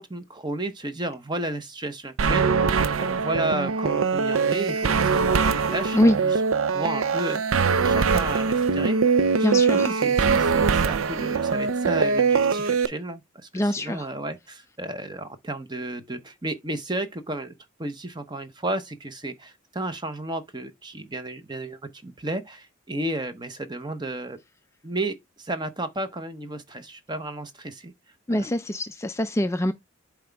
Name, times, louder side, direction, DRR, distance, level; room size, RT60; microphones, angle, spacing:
voice 1, 0.0-2.5 3.0-6.3 6.7-9.2 9.5-17.5 17.8-24.4 24.8-27.9 28.3-28.5, right 1 dB, 20° right, 0.8 m, -33 dB
sound 1, 2.2-12.9, right 5 dB, 70° right, 0.5 m, -22 dB
voice 2, 9.4-9.9 13.5-14.1 28.3-29.7, left 1 dB, 15° left, 0.3 m, -23 dB
7.8 x 4.7 x 3.4 m
head